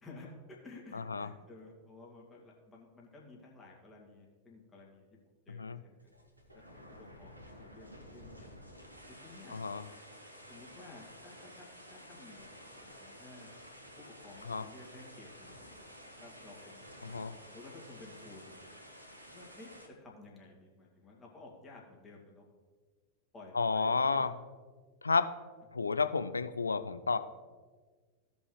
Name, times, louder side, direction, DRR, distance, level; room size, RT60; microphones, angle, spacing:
voice 1, 0.0-5.1 5.5-6.0 6.5-8.5 9.2-9.6 10.5-12.5 12.7-13.5 14.0-15.8 16.2-18.8 19.3-19.7 20.0-22.5 23.3-24.4, left 3 dB, 20° left, -2 dB, 2.3 m, -54 dB
voice 2, 0.9-1.3 5.5-5.8 9.5-9.8 14.4-14.6 17.0-17.3 23.5-24.3 25.0-25.3 25.7-27.2, left 4 dB, 75° left, 11 dB, 0.4 m, -31 dB
sound 1, 6.0-19.9, equal, 85° right, 1.4 m, -52 dB
16.0 x 5.5 x 3.2 m, 1.5 s
figure-of-eight pair, 90°, 0 cm